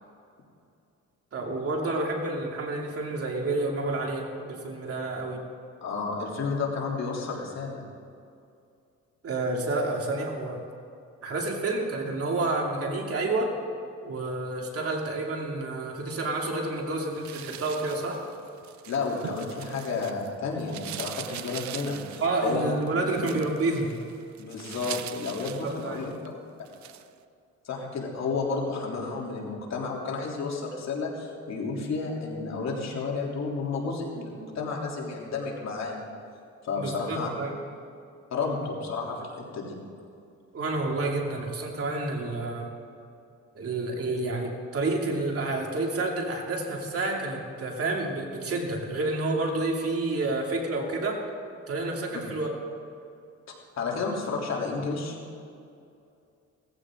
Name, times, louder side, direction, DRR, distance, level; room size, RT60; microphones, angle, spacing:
voice 1, 1.3-5.4 9.2-10.6 11.2-13.6 14.0-18.2 22.2-23.9 25.6-26.0 36.8-37.5 40.5-42.7 43.5-51.2 51.7-52.6, right 2 dB, 50° right, 0 dB, 2.8 m, -29 dB
voice 2, 5.8-7.8 18.9-22.7 24.4-26.1 27.6-36.1 36.6-37.3 38.3-39.8 53.8-55.2, left 4 dB, 60° left, -2 dB, 3.4 m, -31 dB
sound 1, 17.1-20.3 20.6-26.3 26.7-27.1, right 11 dB, 65° right, 0.7 m, -41 dB
18.0 x 15.0 x 3.8 m, 2.5 s
cardioid pair, 90°, 30 cm